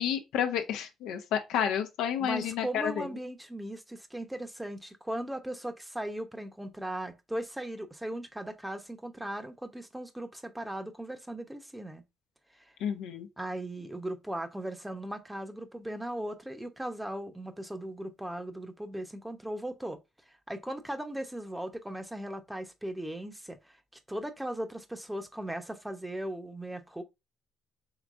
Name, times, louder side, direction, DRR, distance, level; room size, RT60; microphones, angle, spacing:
voice 1, 0.0-3.1 12.8-13.3, left 9 dB, 80° left, 0.8 m, -30 dB
voice 2, 2.2-12.0 12.5-12.7 13.4-20.0 20.3-23.8 24.1-27.0, right 1 dB, 10° right, 0.9 m, -38 dB
4.8 x 3.4 x 2.5 m
supercardioid pair, 70°, 0 cm